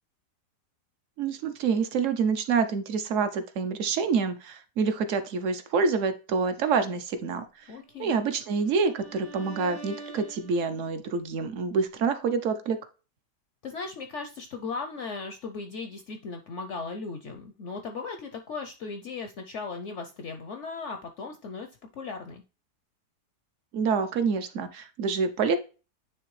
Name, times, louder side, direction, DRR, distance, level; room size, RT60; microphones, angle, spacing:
voice 1, 1.2-7.7 8.0-12.8 23.7-25.6, right 5 dB, 65° right, 9 dB, 0.8 m, -27 dB
voice 2, 7.7-8.2 13.6-21.7 21.9-22.4, left 4 dB, 65° left, 6 dB, 0.7 m, -37 dB
Bowed string instrument, 7.9-11.1, right 2 dB, 85° right, 2.0 m, -46 dB
9.6 x 3.2 x 3.1 m, 0.33 s
omnidirectional pair, 1.8 m